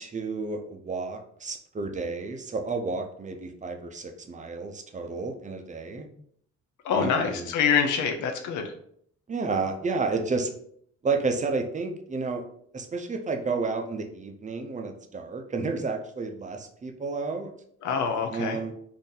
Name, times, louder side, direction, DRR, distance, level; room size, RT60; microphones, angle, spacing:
voice 1, 0.0-6.1 6.9-7.5 9.3-10.5 11.0-12.4 12.7-17.5 18.3-18.7, right 4 dB, 25° right, 4 dB, 0.5 m, -31 dB
voice 2, 6.8-8.7 17.8-18.6, left 6 dB, 75° left, 4 dB, 0.6 m, -25 dB
2.7 x 2.6 x 3.8 m, 0.65 s
cardioid pair, 90°, 30 cm